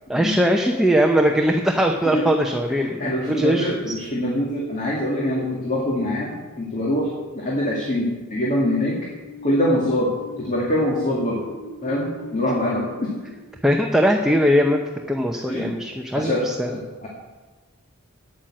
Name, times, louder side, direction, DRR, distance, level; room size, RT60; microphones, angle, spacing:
voice 1, 0.1-3.9 13.6-14.8 15.1-16.7, equal, ahead, 2 dB, 0.7 m, -20 dB
voice 2, 2.8-7.1 7.3-9.0 9.4-10.1 10.4-11.4 11.8-13.1 15.5-15.7 16.1-17.1, left 1 dB, 35° left, -4 dB, 2.2 m, -24 dB
sound 1, 9.1-14.7, equal, 60° left, 3.6 m, -41 dB
9.2 x 9.0 x 7.6 m, 1.3 s
head